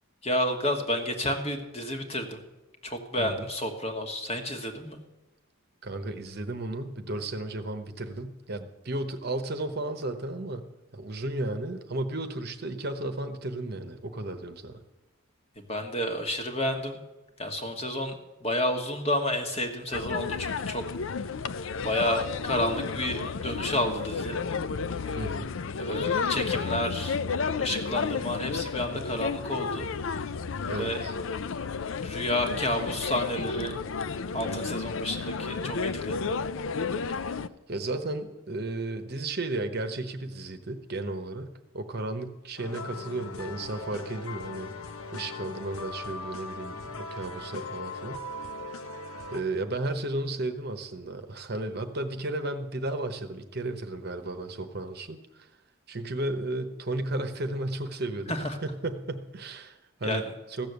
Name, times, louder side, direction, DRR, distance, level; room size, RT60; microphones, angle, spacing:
voice 1, 0.2-2.4 2.8-5.0 15.6-17.0 17.4-20.8 21.8-24.4 25.8-27.2 27.6-29.9 30.8-31.0 32.0-33.7 34.3-36.4 58.3-58.6 60.0-60.2, left 1 dB, 30° left, 4 dB, 1.4 m, -30 dB
voice 2, 5.8-10.7 10.9-14.8 25.2-25.6 30.6-31.1 37.3-37.4 37.7-44.7 45.1-48.2 49.3-55.5 55.9-60.7, right 2 dB, 50° right, 8 dB, 0.9 m, -34 dB
sound 1, 19.9-37.5, left 5 dB, 65° left, 0.5 m, -32 dB
sound 2, 42.6-49.4, left 3 dB, 85° left, 1.0 m, -39 dB
15.0 x 6.9 x 8.0 m, 1.0 s
head